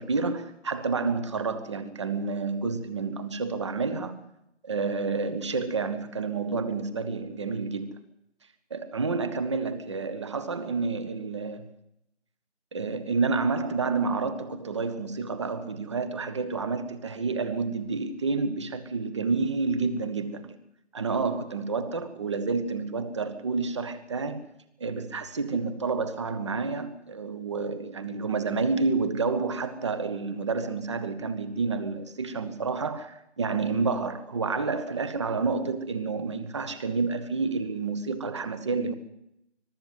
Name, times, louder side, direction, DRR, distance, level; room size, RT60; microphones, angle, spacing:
voice 1, 0.0-4.2 4.6-7.9 8.7-11.7 12.7-20.6 20.9-24.5 24.8-38.9, right 4 dB, 25° right, 1.2 m, -29 dB
22.5 x 12.5 x 9.4 m
figure-of-eight pair, 160°, 35 cm